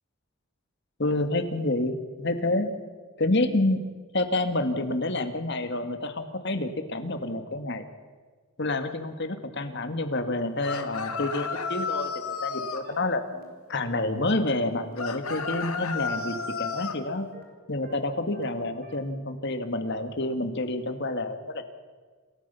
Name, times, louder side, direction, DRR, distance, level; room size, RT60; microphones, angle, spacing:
voice 1, 1.0-2.7 3.2-3.8 4.1-7.8 8.6-12.1 12.4-13.2 13.7-17.3 17.7-21.6, left 2 dB, 55° left, 8 dB, 1.8 m, -28 dB
sound 1, 10.6-12.9 15.0-17.0, left 5 dB, 85° left, 1.8 m, -32 dB
sound 2, 12.8-12.9 13.3-13.4 13.8-13.9 14.3-14.4 14.8-14.9 15.3-15.4 15.8-15.9 16.3-16.4 16.8-16.9 17.3-17.4 17.8-17.9 18.3-18.4 18.8-18.9, right 1 dB, 45° right, 4.3 m, -49 dB
27.5 x 14.0 x 6.9 m, 1.5 s
head